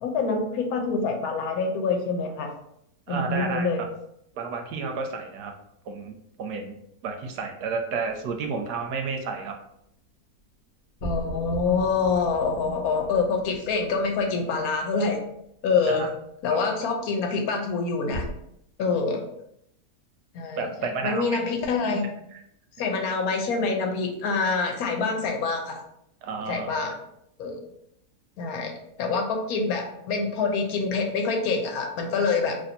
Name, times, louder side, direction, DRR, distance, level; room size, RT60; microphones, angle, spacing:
voice 1, 0.0-2.5 3.1-3.8 11.0-15.2 15.6-16.1 16.4-18.3 18.8-19.2 20.3-20.7 21.0-22.0 22.8-25.8 26.5-26.9 27.4-27.6 28.4-28.7 29.0-32.6, left 4 dB, 70° left, 2 dB, 1.1 m, -26 dB
voice 2, 3.1-3.7 4.4-5.5 5.9-6.8 7.0-9.5 15.9-16.1 20.6-21.4 26.2-26.7, right 4 dB, 85° right, 4 dB, 1.2 m, -31 dB
sound 1, 8.2-9.0 11.0-15.4 18.1-18.3, right 1 dB, 45° left, 1.1 m, -39 dB
2.9 x 2.6 x 4.2 m, 0.76 s
omnidirectional pair, 1.7 m